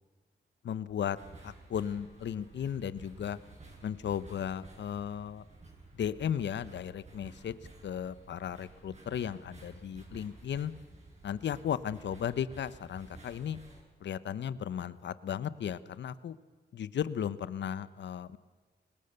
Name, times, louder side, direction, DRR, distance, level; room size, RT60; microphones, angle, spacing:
voice 1, 0.6-1.2 1.4-3.4 3.8-5.4 6.0-7.5 7.8-10.7 11.2-13.6 14.0-16.3 16.7-18.4, left 9 dB, 80° left, 16 dB, 1.0 m, -35 dB
sound 1, 1.2-13.8, right 3 dB, 40° right, 7.4 m, -53 dB
23.5 x 20.0 x 6.7 m, 1.4 s
cardioid pair, 75°, 18 cm